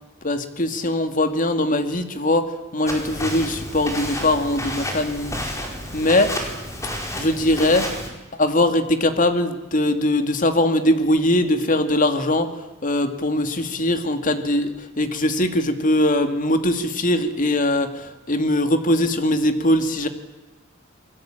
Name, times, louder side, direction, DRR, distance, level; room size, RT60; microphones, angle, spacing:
voice 1, 0.2-5.4 5.9-6.3 7.2-7.9 8.3-20.1, left 1 dB, 40° left, 8 dB, 2.3 m, -21 dB
Walk footsteps, 2.9-8.1, left 1 dB, 15° left, 4.8 m, -30 dB
28.0 x 21.5 x 8.9 m, 1.1 s
head